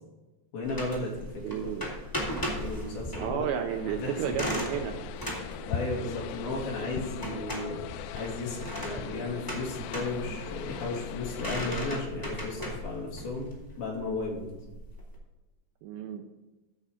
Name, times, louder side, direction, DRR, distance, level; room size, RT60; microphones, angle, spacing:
voice 1, 0.5-1.3 1.5-1.7 2.6-3.5 3.9-4.5 5.7-7.8 8.1-13.5 13.8-14.5, left 2 dB, 65° left, -2 dB, 4.0 m, -34 dB
sound 1, 0.6-15.1, equal, 5° left, 1.5 m, -38 dB
voice 2, 1.4-1.9 3.2-5.0 7.2-7.6 15.8-16.2, right 8 dB, 80° right, 5 dB, 2.4 m, -32 dB
sound 2, 3.7-12.0, left 8 dB, 80° left, 2.6 m, -40 dB
15.0 x 5.5 x 4.9 m, 1.1 s
omnidirectional pair, 5.0 m